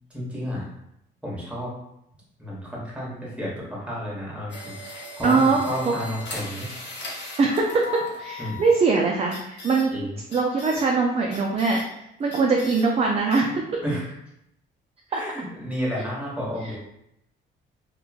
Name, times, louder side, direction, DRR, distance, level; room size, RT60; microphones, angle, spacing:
voice 1, 0.1-0.7 1.2-1.7 2.4-6.7 8.4-8.6 9.9-10.1 13.8-14.1 15.1-16.7, equal, 5° right, -6 dB, 1.1 m, -31 dB
sound 1, 4.5-8.8 9.3-9.8 10.3-10.8 11.3-11.8 12.3-12.8 13.3-13.4, left 3 dB, 60° left, 0.7 m, -38 dB
voice 2, 5.2-6.0 7.4-9.9 10.3-11.8 12.2-13.6 15.1-15.2, right 4 dB, 30° right, 0 dB, 0.3 m, -22 dB
3.0 x 2.1 x 2.3 m, 0.80 s
cardioid pair, 90°, 20 cm